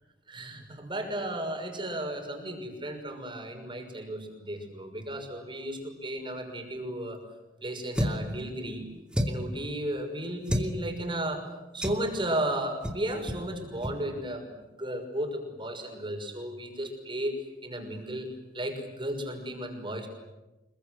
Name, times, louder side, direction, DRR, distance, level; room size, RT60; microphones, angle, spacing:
voice 1, 0.3-7.2 7.6-8.9 9.3-17.3 17.6-20.1, right 1 dB, 30° right, 4 dB, 6.2 m, -34 dB
sound 1, 7.9-8.3 9.1-9.5 10.5-10.7 11.8-12.1 12.8-13.0 13.3-13.4 13.8-14.0, equal, 5° right, 2.6 m, -29 dB
27.5 x 23.0 x 9.5 m, 1.0 s
head